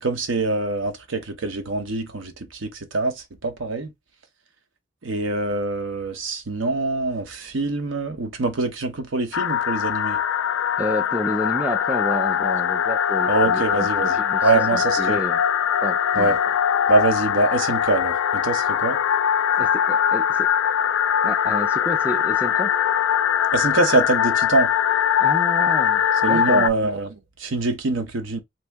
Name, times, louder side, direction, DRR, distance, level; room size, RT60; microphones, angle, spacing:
voice 1, 0.0-3.1 3.4-3.9 5.0-10.2 13.3-15.2 16.2-16.4 16.9-19.0 23.5-24.7 26.2-28.4, right 3 dB, 80° right, 0.8 m, -24 dB
sound 1, 9.3-26.7, left 9 dB, 85° left, 0.3 m, -21 dB
voice 2, 10.8-15.4 15.8-16.4 19.6-20.5 21.2-22.7 25.2-26.7, equal, 5° right, 0.4 m, -30 dB
2.8 x 2.7 x 3.4 m
head